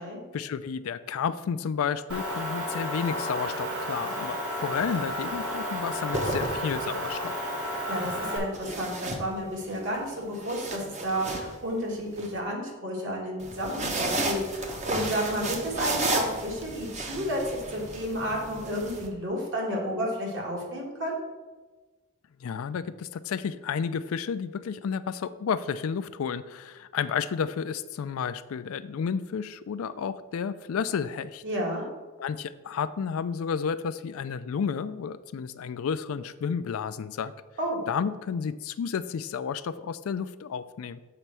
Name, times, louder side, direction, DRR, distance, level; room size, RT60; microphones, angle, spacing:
voice 1, 0.3-7.4 22.4-31.4 32.2-37.3 37.9-41.0, left 6 dB, 65° left, 14 dB, 0.3 m, -31 dB
Motor vehicle (road) / Engine, 2.1-8.4, equal, 85° right, 1.8 m, -32 dB
sound 1, 4.7-5.0 5.9-7.1 8.5-9.8 10.2-12.3 13.4-19.1, right 2 dB, 30° right, 0.8 m, -33 dB
voice 2, 7.9-21.2 31.4-31.8 37.6-37.8, equal, 55° right, -2 dB, 1.9 m, -31 dB
6.7 x 4.3 x 6.1 m, 1.3 s
head